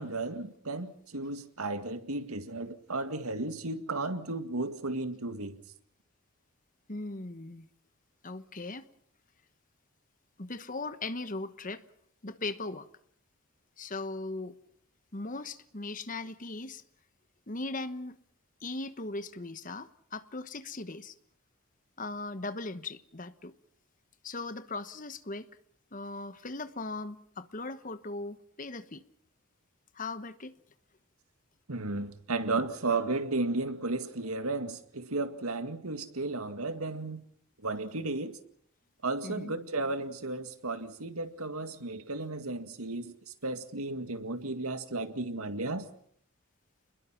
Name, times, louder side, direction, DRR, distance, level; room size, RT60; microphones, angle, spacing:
voice 1, 0.0-5.6 31.7-37.2 37.6-38.4 39.0-43.1 43.4-45.9, right 2 dB, 90° right, 2.1 m, -34 dB
voice 2, 6.9-7.7 8.2-8.8 10.4-11.8 12.2-12.9 13.8-14.5 15.1-16.8 17.5-18.2 18.6-21.1 22.0-23.5 24.2-25.5 25.9-29.0 29.9-30.5 39.2-39.5, left 2 dB, 35° left, 1.1 m, -38 dB
28.5 x 21.0 x 5.9 m
head